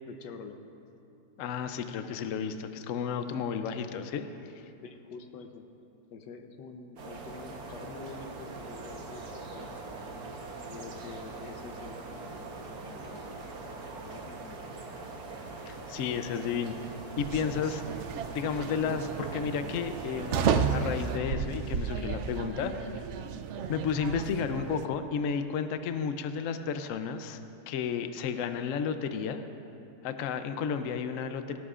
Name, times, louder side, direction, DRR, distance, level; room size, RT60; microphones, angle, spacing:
voice 1, 0.1-0.6 4.8-5.6 6.1-10.2 10.7-13.5 14.0-14.9, left 5 dB, 80° left, 6 dB, 1.4 m, -47 dB
voice 2, 1.4-4.3 15.7-16.7 17.2-17.8 18.3-22.9 23.7-27.4 27.7-29.5 30.0-31.6, left 6 dB, 65° left, 9 dB, 0.8 m, -32 dB
sound 1, 7.0-21.2, right 3 dB, 65° right, 1.6 m, -42 dB
sound 2, 17.2-24.9, right 6 dB, 80° right, 0.6 m, -33 dB
18.0 x 17.5 x 2.5 m, 2.8 s
omnidirectional pair, 1.8 m